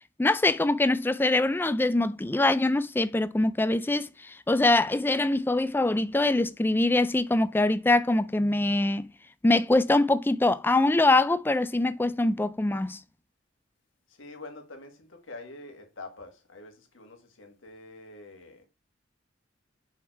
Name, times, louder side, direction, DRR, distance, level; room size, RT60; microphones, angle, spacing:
voice 1, 0.2-9.1 9.4-13.0, left 2 dB, 10° left, 0.3 m, -24 dB
voice 2, 14.2-18.6, left 2 dB, 75° left, 1.7 m, -46 dB
5.8 x 4.5 x 4.5 m
head